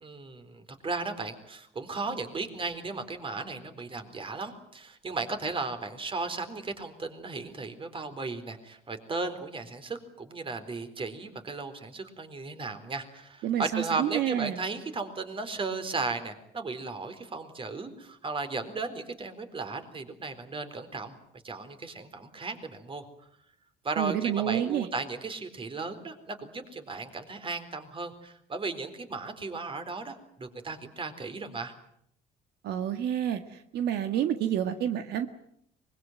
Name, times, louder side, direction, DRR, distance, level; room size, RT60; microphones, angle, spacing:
voice 1, 0.0-21.2 21.4-23.1 23.8-31.7, right 3 dB, 30° right, 9 dB, 4.1 m, -35 dB
voice 2, 13.4-14.6 24.0-24.9 32.6-35.3, right 10 dB, 75° right, 8 dB, 1.7 m, -29 dB
24.0 x 22.0 x 9.3 m, 0.70 s
cardioid pair, 110°, 17 cm